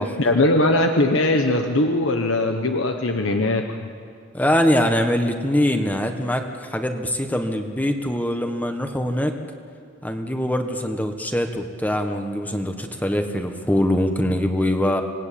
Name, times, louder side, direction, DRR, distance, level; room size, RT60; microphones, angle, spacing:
voice 1, 0.2-3.9, left 2 dB, 85° left, 4 dB, 1.2 m, -20 dB
voice 2, 4.3-9.3 10.0-15.0, left 1 dB, 10° left, 5 dB, 1.3 m, -23 dB
26.0 x 19.5 x 8.6 m, 2.3 s
head